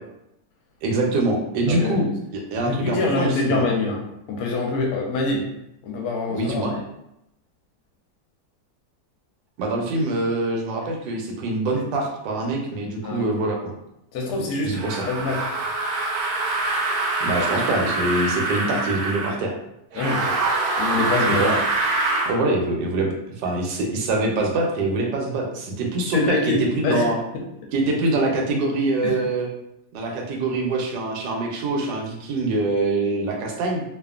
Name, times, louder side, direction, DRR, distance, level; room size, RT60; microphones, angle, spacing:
voice 1, 0.8-3.6 6.3-6.8 9.6-13.7 14.6-15.1 17.2-19.5 21.3-21.6 22.3-27.2 27.7-29.5 29.9-33.8, right 2 dB, 90° right, 1 dB, 1.3 m, -24 dB
voice 2, 1.7-2.0 2.6-4.0 4.3-5.5 5.8-6.6 13.0-13.3 14.1-15.4 19.9-20.4 20.8-21.4 26.1-27.1 29.0-29.2, left 3 dB, 75° left, 0 dB, 1.0 m, -25 dB
sound 1, 14.7-19.4 19.9-22.4, right 2 dB, 70° right, 1.0 m, -24 dB
2.7 x 2.4 x 2.3 m, 0.83 s
omnidirectional pair, 1.8 m